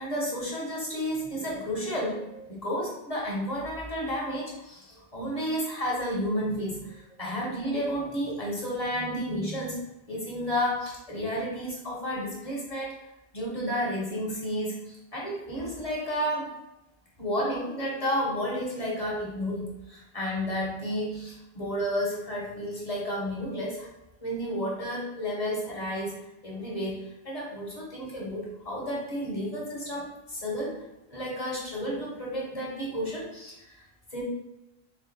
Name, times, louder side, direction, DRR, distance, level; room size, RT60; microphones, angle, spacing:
voice 1, 0.0-12.9 13.3-16.6 17.2-23.9 24.2-26.1 26.4-30.8 31.1-33.7 34.1-34.2, equal, 35° left, -5 dB, 1.2 m, -32 dB
3.8 x 3.3 x 3.2 m, 0.90 s
omnidirectional pair, 1.0 m